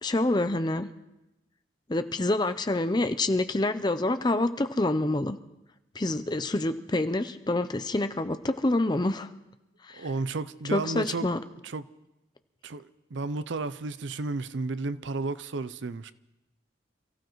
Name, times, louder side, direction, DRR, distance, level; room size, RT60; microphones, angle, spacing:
voice 1, 0.0-0.9 1.9-5.4 5.9-9.3 9.9-10.1 10.7-11.4, left 2 dB, 20° left, 0.5 m, -27 dB
voice 2, 10.0-11.3 11.6-11.9 12.6-16.1, right 3 dB, 75° right, 0.5 m, -32 dB
28.0 x 15.0 x 3.1 m
head